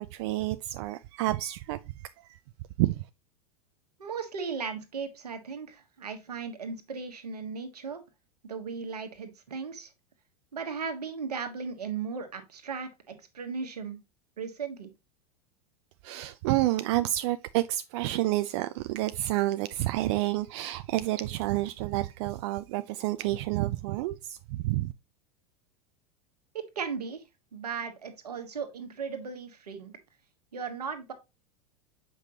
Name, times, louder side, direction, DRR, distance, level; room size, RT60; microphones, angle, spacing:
voice 1, 0.0-2.4 2.8-3.1 16.0-24.9, right 16 dB, 50° right, 0.4 m, -29 dB
voice 2, 4.0-8.0 8.4-9.9 10.5-14.0 14.4-14.9 26.5-27.2 27.5-30.0 30.5-31.1, right 5 dB, 75° right, 1.4 m, -36 dB
7.2 x 5.3 x 2.8 m
figure-of-eight pair, 85°, 20 cm